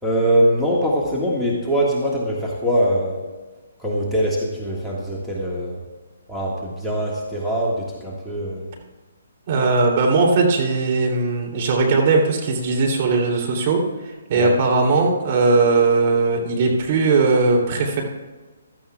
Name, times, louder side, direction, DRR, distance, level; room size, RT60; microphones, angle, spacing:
voice 1, 0.0-3.2 3.8-5.8 6.3-8.7 14.3-14.6, equal, ahead, -6 dB, 1.8 m, -22 dB
voice 2, 9.5-18.0, right 3 dB, 45° right, 0 dB, 3.0 m, -19 dB
16.0 x 13.0 x 2.4 m, 1.3 s
hypercardioid pair, 145°, 0 cm